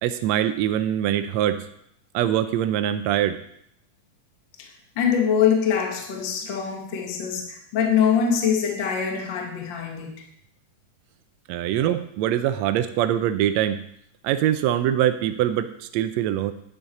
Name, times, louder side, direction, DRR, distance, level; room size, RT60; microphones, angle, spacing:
voice 1, 0.0-1.6 2.1-3.4 11.5-13.8 14.2-16.5, right 11 dB, 85° right, 10 dB, 1.5 m, -23 dB
voice 2, 4.6-10.1 11.8-11.9, left 7 dB, 50° left, 1 dB, 1.5 m, -24 dB
10.5 x 9.5 x 4.2 m, 0.71 s
omnidirectional pair, 3.7 m